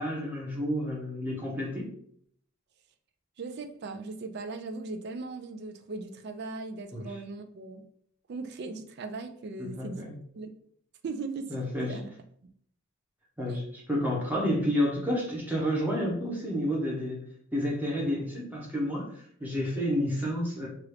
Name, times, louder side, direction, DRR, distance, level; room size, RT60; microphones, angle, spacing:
voice 1, 0.0-1.9 6.9-7.0 9.6-10.1 11.5-12.0 13.4-13.6 13.9-17.2 17.5-20.7, equal, 10° right, -4 dB, 0.8 m, -30 dB
voice 2, 3.4-7.8 8.3-10.1 10.3-10.5 11.0-11.5 11.8-12.1 13.5-13.6, right 3 dB, 50° right, 8 dB, 0.3 m, -38 dB
3.0 x 2.4 x 3.2 m, 0.64 s
head